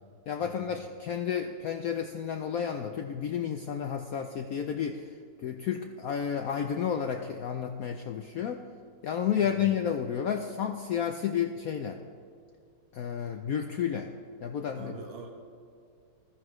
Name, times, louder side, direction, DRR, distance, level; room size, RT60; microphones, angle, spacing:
voice 1, 0.3-5.1 5.4-8.6 9.0-12.0 12.9-14.1 14.4-15.0, left 8 dB, 75° left, 6 dB, 0.8 m, -31 dB
voice 2, 9.4-9.7 14.8-15.3, right 4 dB, 70° right, 2 dB, 2.0 m, -44 dB
15.0 x 13.0 x 3.1 m, 2.2 s
omnidirectional pair, 2.1 m